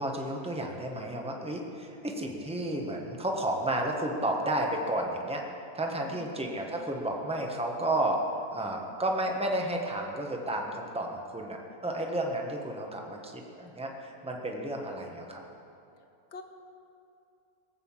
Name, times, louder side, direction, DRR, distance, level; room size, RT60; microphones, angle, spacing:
voice 1, 0.0-5.4 5.7-8.2 8.5-15.4, right 1 dB, 5° right, 1 dB, 1.3 m, -32 dB
voice 2, 6.0-6.3 14.5-14.8 16.3-16.4, left 3 dB, 50° left, 6 dB, 1.3 m, -47 dB
19.5 x 8.2 x 7.4 m, 2.7 s
omnidirectional pair, 1.7 m